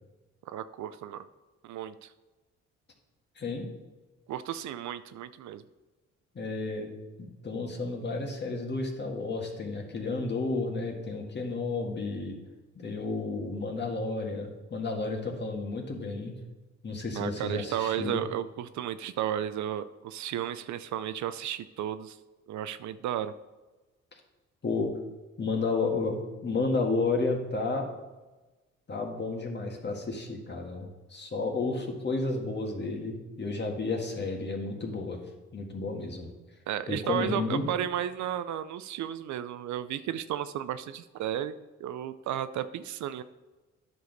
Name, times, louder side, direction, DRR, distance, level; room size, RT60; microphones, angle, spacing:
voice 1, 0.5-1.3 1.6-2.1 4.3-5.6 17.1-22.2 22.5-23.3 36.7-43.2, right 11 dB, 70° right, 13 dB, 0.5 m, -33 dB
voice 2, 3.4-3.7 6.4-6.9 7.2-12.4 12.8-16.4 16.8-18.2 24.6-24.9 25.4-27.9 28.9-35.2 35.5-36.3 36.9-37.7, left 3 dB, 35° left, 2 dB, 1.7 m, -32 dB
9.8 x 6.2 x 4.0 m, 1.2 s
cardioid pair, 90°, 30 cm